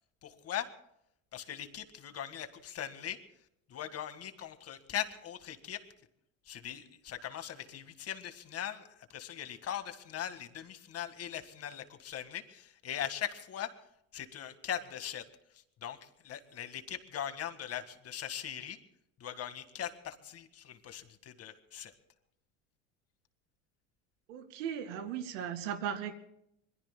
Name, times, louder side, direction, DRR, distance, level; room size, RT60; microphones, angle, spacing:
voice 1, 0.2-0.7 1.3-3.2 3.7-5.9 6.5-13.7 14.1-15.2 15.5-18.8 19.2-21.9, left 10 dB, 45° left, 10 dB, 1.8 m, -40 dB
voice 2, 24.3-26.2, right 9 dB, 90° right, 8 dB, 2.2 m, -37 dB
26.5 x 22.0 x 2.2 m, 0.77 s
supercardioid pair, 110°, 35 cm